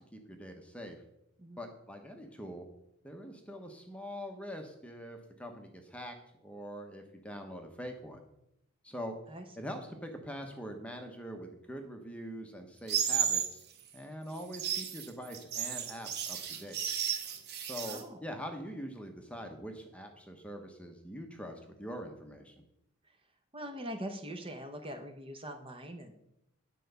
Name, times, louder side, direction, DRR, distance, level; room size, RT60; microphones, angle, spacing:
voice 1, 0.1-1.0 1.6-2.7 3.0-8.2 8.8-9.2 9.6-13.6 13.9-16.8 17.6-22.6, equal, 5° left, 4 dB, 0.9 m, -43 dB
sound 1, 12.9-13.5 14.4-18.0, right 8 dB, 45° right, 1.1 m, -33 dB
voice 2, 17.9-18.2 23.5-26.1, equal, 25° right, 5 dB, 0.8 m, -42 dB
10.0 x 4.6 x 6.7 m, 0.81 s
head